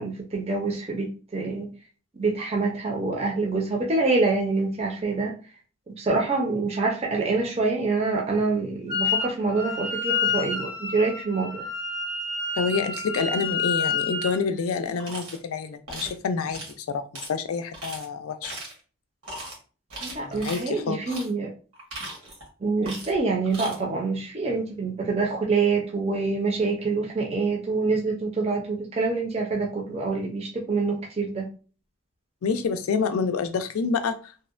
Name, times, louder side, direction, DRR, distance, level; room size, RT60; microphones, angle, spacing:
voice 1, 0.0-1.7 2.2-5.3 5.9-11.6 20.0-21.5 22.6-31.5, right 3 dB, 30° right, 0.4 m, -26 dB
Wind instrument woodwind instrument, 8.9-9.3 9.5-14.4, left 4 dB, 20° left, 0.6 m, -28 dB
voice 2, 12.6-18.5 20.2-21.0 32.4-34.2, left 5 dB, 80° left, 0.4 m, -28 dB
sound 1, 15.0-15.4 15.9-16.2 16.5-16.7 17.1-17.3 17.7-18.0 18.4-18.8 19.2-19.5 19.9-20.6 21.1-21.3 21.7-22.5 22.8-23.2 23.4-23.8, right 2 dB, 90° right, 1.1 m, -38 dB
2.7 x 2.1 x 2.4 m
head